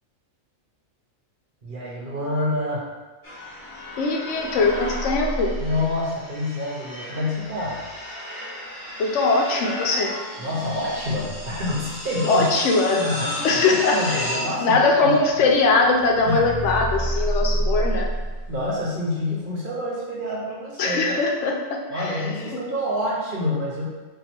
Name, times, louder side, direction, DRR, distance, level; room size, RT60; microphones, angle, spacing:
voice 1, 1.6-2.9 5.5-7.8 10.4-12.5 12.9-15.2 16.3-16.4 18.5-21.1 21.9-23.8, left 1 dB, 45° right, -5 dB, 0.9 m, -27 dB
sound 1, 3.2-18.7, equal, 15° left, 1.3 m, -31 dB
voice 2, 4.0-5.5 9.0-10.1 12.3-13.0 13.4-14.3 14.6-18.1 20.8-22.1, left 3 dB, 70° left, 1 dB, 0.9 m, -21 dB
4.6 x 2.3 x 4.3 m, 1.3 s
omnidirectional pair, 1.3 m